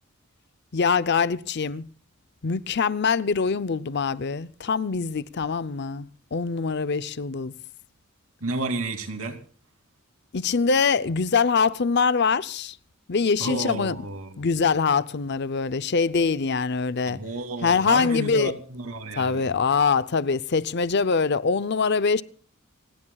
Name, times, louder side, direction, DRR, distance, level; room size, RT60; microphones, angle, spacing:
voice 1, 0.7-1.9 2.4-7.5 10.3-12.8 13.1-14.0 14.4-17.2 17.6-18.5 19.2-22.2, left 5 dB, 50° left, 0.6 m, -23 dB
voice 2, 8.4-9.4 13.4-14.4 17.1-19.5, right 2 dB, 80° right, 2.8 m, -31 dB
29.0 x 17.5 x 2.3 m
head